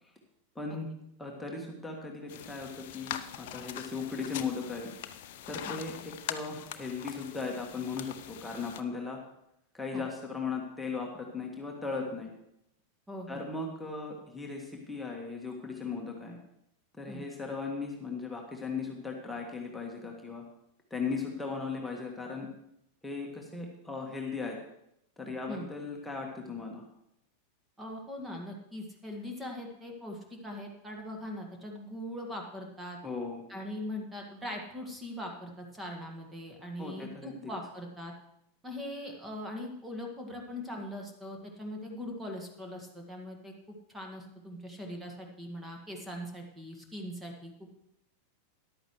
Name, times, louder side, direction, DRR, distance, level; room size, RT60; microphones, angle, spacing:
voice 1, 0.5-0.9 1.2-4.9 5.5-9.2 9.7-12.3 13.3-16.4 16.9-20.4 20.9-22.5 23.0-24.6 25.2-26.8 33.0-33.4 36.8-37.5, left 4 dB, 5° left, -1 dB, 1.7 m, -37 dB
sound 1, 2.3-8.8, left 11 dB, 50° left, 0.7 m, -42 dB
voice 2, 13.1-13.5 17.1-17.2 25.5-25.7 27.8-33.0 33.5-38.1 38.6-47.7, left 1 dB, 10° right, 2 dB, 1.8 m, -41 dB
13.5 x 11.0 x 3.2 m, 0.79 s
figure-of-eight pair, 90°, 0 cm